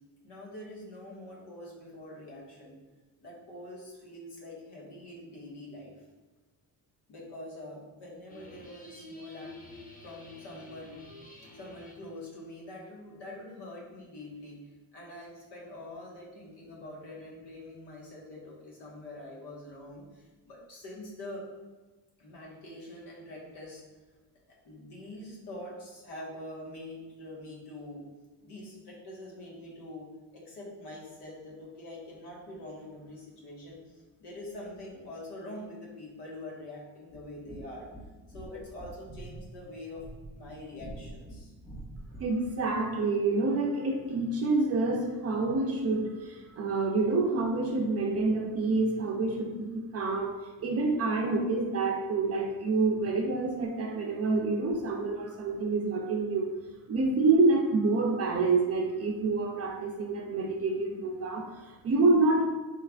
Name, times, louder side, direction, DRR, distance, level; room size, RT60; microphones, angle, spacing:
voice 1, 0.2-2.8 3.2-5.9 7.1-9.5 10.0-11.0 11.5-21.4 22.2-23.8 24.6-28.0 28.4-30.1 30.3-37.9 38.3-40.0 40.3-41.5, left 1 dB, 90° left, -4 dB, 1.5 m, -45 dB
sound 1, 8.3-12.1, left 1 dB, 20° left, 0.5 m, -49 dB
sound 2, 37.1-42.5, right 1 dB, 5° left, 1.4 m, -46 dB
voice 2, 42.2-56.5 56.9-62.4, right 3 dB, 40° right, 2 dB, 0.5 m, -27 dB
4.3 x 3.3 x 2.4 m, 1.2 s
cardioid pair, 165°, 39 cm